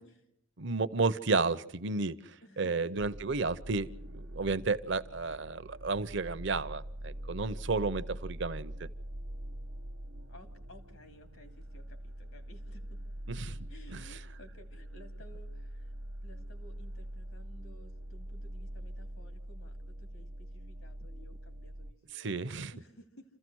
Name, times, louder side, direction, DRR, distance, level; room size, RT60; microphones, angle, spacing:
voice 1, 0.6-8.9 13.3-13.6 13.9-14.0 22.1-22.7, right 3 dB, 55° right, 0.7 m, -32 dB
voice 2, 2.4-2.9 7.8-8.2 10.3-13.0 13.7-15.9 16.2-22.4 22.7-23.2, equal, 80° left, 2.8 m, -57 dB
sound 1, 2.9-21.9, right 1 dB, 75° right, 1.2 m, -44 dB
28.5 x 15.0 x 6.3 m
head